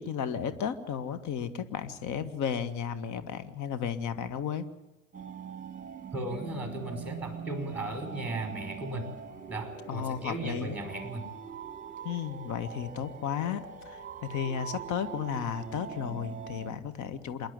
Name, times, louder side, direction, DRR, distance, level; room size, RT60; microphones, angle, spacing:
voice 1, 0.0-4.6 9.9-10.8 12.0-17.5, left 8 dB, 45° left, 14 dB, 1.9 m, -34 dB
sound 1, 5.1-16.7, right 6 dB, 20° right, 2.1 m, -43 dB
voice 2, 6.1-9.1 9.5-11.2, right 2 dB, 5° right, 6 dB, 5.3 m, -36 dB
27.0 x 11.5 x 9.6 m, 1.0 s
hypercardioid pair, 80°, 39 cm